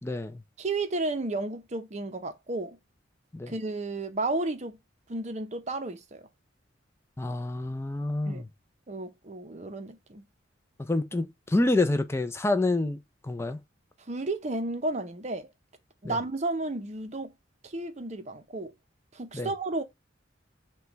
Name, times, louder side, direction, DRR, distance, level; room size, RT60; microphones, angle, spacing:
voice 1, 0.0-0.4 3.3-3.5 7.2-8.5 10.8-13.6 16.0-16.2 19.3-19.5, left 2 dB, 15° left, 0.4 m, -28 dB
voice 2, 0.6-2.8 3.5-4.8 5.1-6.3 8.3-8.4 8.9-10.2 14.1-15.5 16.0-17.3 17.6-18.7 19.1-19.8, right 2 dB, 35° right, 0.6 m, -32 dB
5.8 x 2.3 x 2.9 m
head